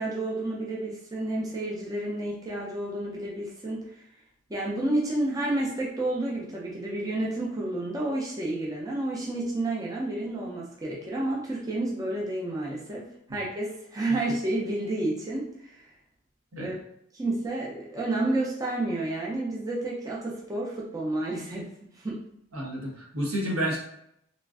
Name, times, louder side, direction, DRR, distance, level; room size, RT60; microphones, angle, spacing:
voice 1, 0.0-3.9 4.5-13.1 13.3-15.8 16.6-16.8 17.1-21.7 22.0-22.2, right 2 dB, 15° right, -4 dB, 0.4 m, -30 dB
voice 2, 22.5-23.8, right 1 dB, 85° right, -3 dB, 1.0 m, -30 dB
3.0 x 2.5 x 2.3 m, 0.73 s
head